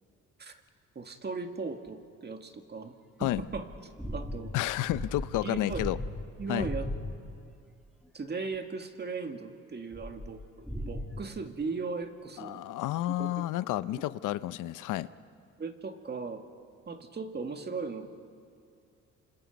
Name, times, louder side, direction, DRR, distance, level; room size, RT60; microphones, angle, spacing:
voice 1, 1.0-2.9 3.2-3.6 4.1-4.5 5.4-5.8 6.4-6.9 8.1-12.6 13.2-13.5 13.9-14.0 15.6-16.4 16.9-18.1, right 4 dB, 35° right, 6 dB, 2.0 m, -37 dB
sound 1, 3.2-7.4 9.9-11.2, left 1 dB, ahead, 2.7 m, -38 dB
voice 2, 4.5-6.0 6.5-6.7 12.4-15.1, left 15 dB, 90° left, 15 dB, 0.6 m, -31 dB
28.5 x 26.0 x 5.3 m, 2.5 s
cardioid pair, 90°, 30 cm